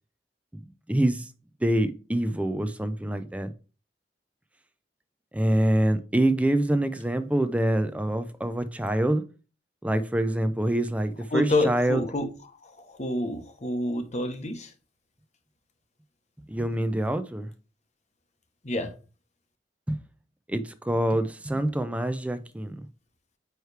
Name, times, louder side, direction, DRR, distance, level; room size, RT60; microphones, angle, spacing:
voice 1, 0.9-1.3 1.6-3.5 5.3-9.2 9.8-12.0 16.5-17.5 19.9-20.0 20.5-22.8, right 1 dB, 10° right, 0.5 m, -25 dB
voice 2, 11.3-12.3 12.6-14.7 18.6-18.9, left 1 dB, 40° left, 1.0 m, -28 dB
9.3 x 3.2 x 3.3 m
head